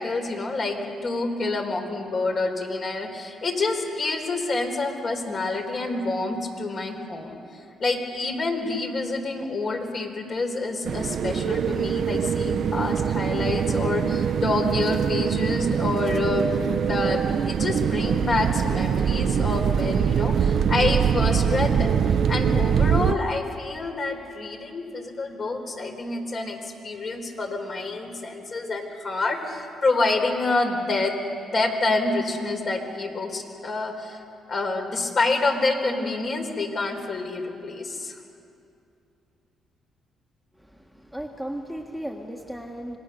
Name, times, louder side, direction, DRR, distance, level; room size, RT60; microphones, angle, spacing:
voice 1, 0.0-7.4 7.8-16.5 16.9-22.0 22.3-31.1 31.5-34.2 34.5-38.2, left 3 dB, 45° left, 3 dB, 3.8 m, -27 dB
sound 1, 10.8-23.1, right 7 dB, 60° right, 0.6 m, -23 dB
voice 2, 40.6-43.0, right 1 dB, 5° left, 2 dB, 1.5 m, -36 dB
26.0 x 19.0 x 6.8 m, 2.6 s
cardioid pair, 90°, 0 cm